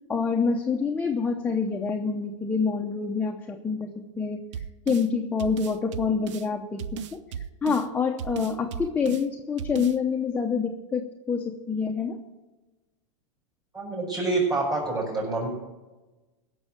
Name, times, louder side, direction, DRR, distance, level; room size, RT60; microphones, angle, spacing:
voice 1, 0.1-12.2, left 5 dB, 10° left, 2 dB, 0.8 m, -27 dB
sound 1, 4.5-5.1 5.4-6.5 6.8-7.9 8.2-9.2 9.6-10.0, right 8 dB, 70° right, 0.7 m, -35 dB
voice 2, 13.7-15.5, right 3 dB, 25° right, -5 dB, 5.8 m, -27 dB
16.0 x 6.3 x 8.9 m, 1.1 s
supercardioid pair, 130°, 16 cm